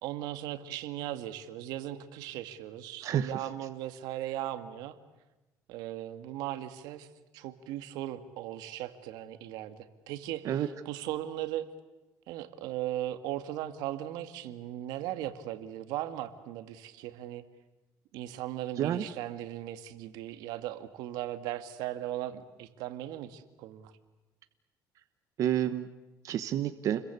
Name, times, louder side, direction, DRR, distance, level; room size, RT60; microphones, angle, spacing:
voice 1, 0.0-5.0 5.7-7.1 7.3-11.6 12.3-17.4 18.1-23.9, right 13 dB, 85° right, 10 dB, 2.0 m, -38 dB
voice 2, 25.4-25.9 26.2-27.0, right 11 dB, 50° right, 10 dB, 1.2 m, -29 dB
30.0 x 22.5 x 8.3 m, 1.1 s
cardioid pair, 145°, 7 cm